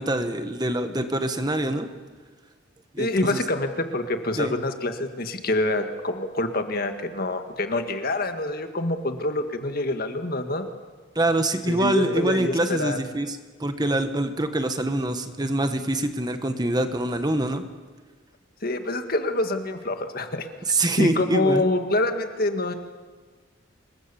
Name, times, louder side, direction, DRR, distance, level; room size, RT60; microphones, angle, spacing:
voice 1, 0.0-1.9 2.9-3.4 4.4-4.5 11.1-17.6 20.7-21.6, right 1 dB, 20° right, 8 dB, 1.3 m, -25 dB
voice 2, 3.0-10.7 11.7-13.0 18.6-20.5 21.0-22.7, left 2 dB, 50° left, 7 dB, 1.8 m, -26 dB
27.0 x 22.5 x 7.0 m, 1.4 s
head